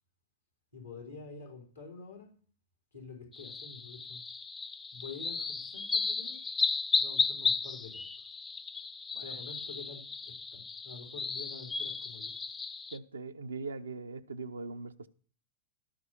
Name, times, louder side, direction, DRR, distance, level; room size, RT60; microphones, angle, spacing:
voice 1, 0.7-2.3 2.9-4.2 4.9-6.4 7.0-8.0 9.2-12.3, left 4 dB, 90° left, 4.3 m, -48 dB
sound 1, 3.3-13.0, left 4 dB, 15° left, 0.5 m, -34 dB
voice 2, 12.9-15.1, right 3 dB, 75° right, 0.5 m, -41 dB
12.0 x 4.7 x 6.8 m
figure-of-eight pair, 90°, 0 cm